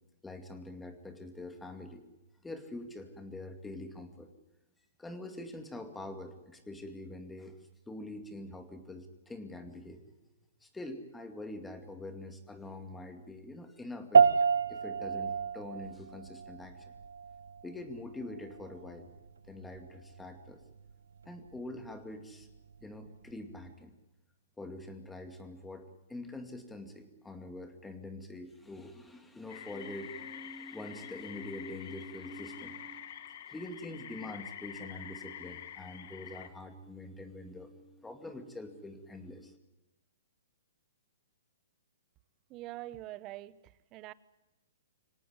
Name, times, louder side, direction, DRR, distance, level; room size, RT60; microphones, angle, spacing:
voice 1, 0.2-2.0 2.4-4.3 5.0-7.6 7.9-10.0 10.6-14.3 14.7-16.8 17.6-19.1 19.5-20.6 21.3-22.5 22.8-23.9 24.6-39.6, left 2 dB, 5° left, 7 dB, 2.3 m, -45 dB
sound 1, 14.1-23.7, right 6 dB, 90° right, 0.8 m, -31 dB
sound 2, 29.5-36.5, left 10 dB, 55° left, 1.7 m, -47 dB
voice 2, 42.5-44.1, right 16 dB, 30° right, 18 dB, 0.9 m, -44 dB
25.0 x 18.0 x 9.6 m, 1.0 s
hypercardioid pair, 145°, 0 cm